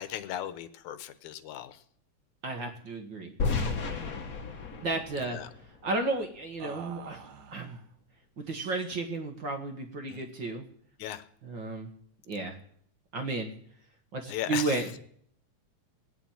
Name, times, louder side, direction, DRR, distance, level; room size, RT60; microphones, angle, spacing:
voice 1, 0.0-1.8 5.2-5.5 10.1-10.2 11.0-11.3 14.3-15.0, left 11 dB, 85° left, 12 dB, 2.3 m, -37 dB
voice 2, 2.4-3.3 3.8-4.0 4.8-5.4 5.8-7.2 7.5-7.8 8.4-10.6 11.4-11.9 12.3-12.6 13.1-13.5 14.1-14.8, right 3 dB, 45° right, 4 dB, 1.8 m, -33 dB
sound 1, 3.3-3.5 3.7-3.9 4.3-5.0 6.6-7.8 8.5-9.1, right 7 dB, 70° right, 2.4 m, -48 dB
sound 2, 3.4-6.4, left 4 dB, 45° left, 1.2 m, -33 dB
19.0 x 7.1 x 9.0 m, 0.63 s
omnidirectional pair, 3.4 m